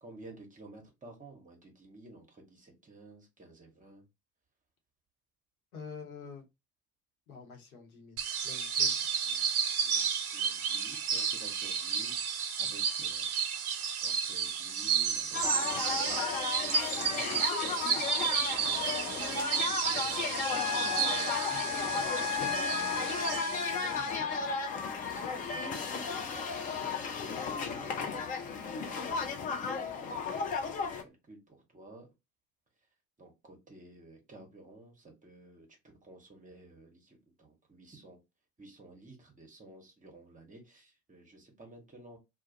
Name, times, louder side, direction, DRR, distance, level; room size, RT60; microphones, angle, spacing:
voice 1, 0.0-4.0 9.3-9.5 9.8-13.3 13.8-18.6 19.5-24.7 25.2-28.3 30.2-30.5 31.0-32.1 33.2-38.2 38.6-42.2, right 2 dB, 20° right, 0.9 m, -53 dB
voice 2, 5.7-6.5 7.3-9.1 25.4-25.6, left 5 dB, 75° left, 0.8 m, -48 dB
sound 1, 8.2-24.1, right 7 dB, 80° right, 0.5 m, -32 dB
sound 2, 15.3-31.0, left 5 dB, 20° left, 0.3 m, -35 dB
Trumpet, 20.4-24.8, left 6 dB, 50° left, 0.9 m, -35 dB
2.2 x 2.1 x 2.7 m
figure-of-eight pair, 60°, 43 cm